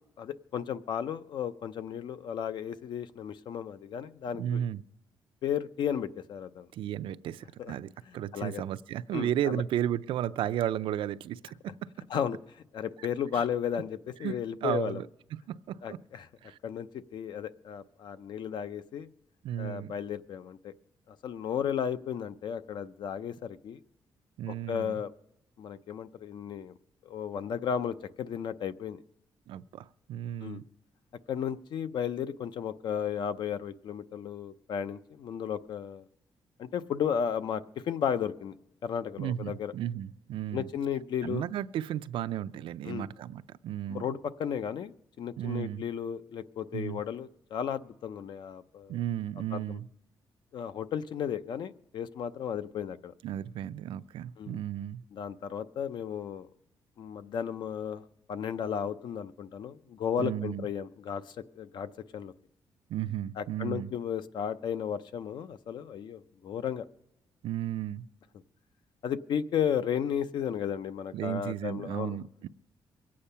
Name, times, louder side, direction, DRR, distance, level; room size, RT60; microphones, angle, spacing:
voice 1, 0.2-4.6 5.4-6.7 7.6-7.7 8.3-8.6 9.1-9.6 12.1-12.4 12.7-15.0 15.8-16.3 16.6-19.1 19.6-20.7 21.1-23.8 24.5-25.1 25.6-26.7 27.0-29.0 30.4-30.6 31.3-36.0 36.6-38.5 38.8-39.7 40.5-41.4 42.9-43.1 43.9-44.9 45.2-49.0 49.5-49.8 50.5-53.1 54.4-54.6 55.1-56.5 57.0-62.3 63.4-66.8 69.0-72.2, left 8 dB, 60° left, 12 dB, 0.6 m, -34 dB
voice 2, 4.4-4.8 6.7-11.7 13.0-13.1 13.3-13.4 14.2-14.3 14.6-15.1 15.5-16.0 16.4-16.6 19.4-19.9 24.4-25.0 29.5-30.6 39.2-40.7 41.2-44.1 45.4-45.8 46.7-47.0 48.9-49.9 53.2-55.0 60.2-60.7 62.9-63.9 67.4-68.0 71.1-72.5, right 11 dB, 80° right, 14 dB, 0.4 m, -34 dB
23.0 x 8.6 x 5.6 m, 0.83 s
cardioid pair, 170°, 9 cm